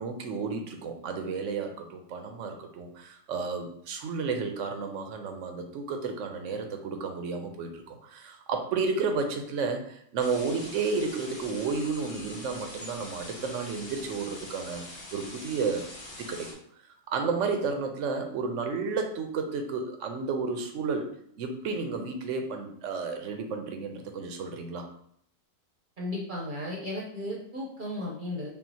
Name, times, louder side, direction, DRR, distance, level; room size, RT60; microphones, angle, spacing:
voice 1, 0.0-14.8 15.1-15.9 16.2-16.5 17.1-21.1 21.4-24.9, right 4 dB, 70° right, 5 dB, 1.0 m, -32 dB
sound 1, 10.2-16.5, left 1 dB, 30° left, 0.5 m, -44 dB
voice 2, 26.0-28.5, left 1 dB, 45° right, -3 dB, 0.8 m, -35 dB
5.6 x 2.4 x 2.7 m, 0.67 s
omnidirectional pair, 1.4 m